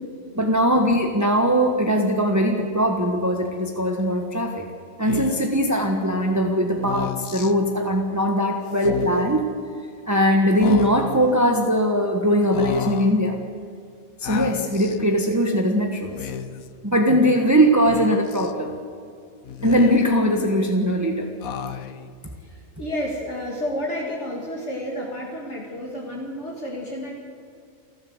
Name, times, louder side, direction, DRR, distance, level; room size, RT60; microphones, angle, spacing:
voice 1, 0.3-4.7 5.0-9.5 10.1-13.4 14.2-16.3 16.8-18.7 19.6-21.3, equal, 15° right, 2 dB, 1.3 m, -20 dB
Speech, 5.0-5.6 6.7-7.5 8.7-9.4 10.6-11.3 12.5-13.2 14.2-15.0 16.0-16.7 17.8-18.5 19.4-20.3 21.4-22.1, left 8 dB, 85° left, 1.3 m, -32 dB
voice 2, 22.4-27.2, equal, 55° left, -2 dB, 2.6 m, -31 dB
29.0 x 12.0 x 7.9 m, 2.3 s
omnidirectional pair, 1.4 m